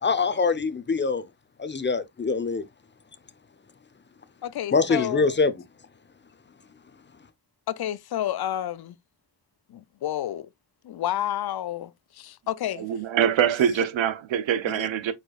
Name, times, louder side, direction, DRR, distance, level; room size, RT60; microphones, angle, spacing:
voice 1, 0.0-1.2 1.6-2.6 4.7-5.5, left 4 dB, 25° left, 0.8 m, -24 dB
voice 2, 4.4-5.2 7.7-9.0 9.7-10.5 10.8-12.9 14.7-14.9, left 12 dB, 55° left, 0.5 m, -30 dB
voice 3, 12.8-15.1, right 9 dB, 75° right, 0.9 m, -24 dB
4.8 x 4.3 x 2.4 m
cardioid pair, 50°, 47 cm